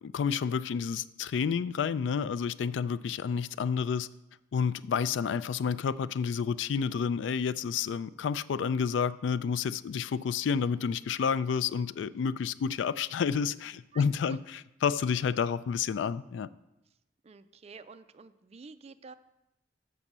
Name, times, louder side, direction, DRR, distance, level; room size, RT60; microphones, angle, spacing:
voice 1, 0.0-4.1 4.5-16.5, left 6 dB, 90° left, 17 dB, 0.3 m, -30 dB
voice 2, 13.9-14.4 17.2-19.1, right 4 dB, 35° right, 12 dB, 0.4 m, -50 dB
6.7 x 6.2 x 7.3 m, 0.93 s
head